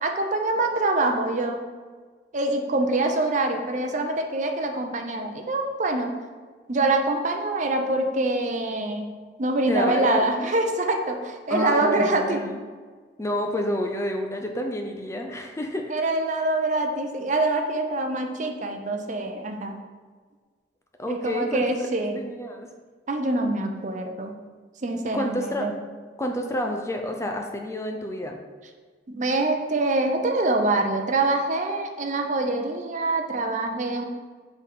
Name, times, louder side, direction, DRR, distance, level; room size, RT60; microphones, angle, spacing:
voice 1, 0.0-1.6 2.3-6.1 6.7-9.1 9.4-12.4 15.9-19.8 21.1-22.2 23.1-24.3 24.8-25.7 29.1-34.0, right 2 dB, 45° right, 4 dB, 0.7 m, -25 dB
voice 2, 9.7-10.3 11.5-12.6 13.2-15.9 21.0-21.7 22.2-22.7 25.1-25.7 26.2-28.4, left 1 dB, 15° left, 3 dB, 0.5 m, -29 dB
7.8 x 4.0 x 3.6 m, 1.5 s
head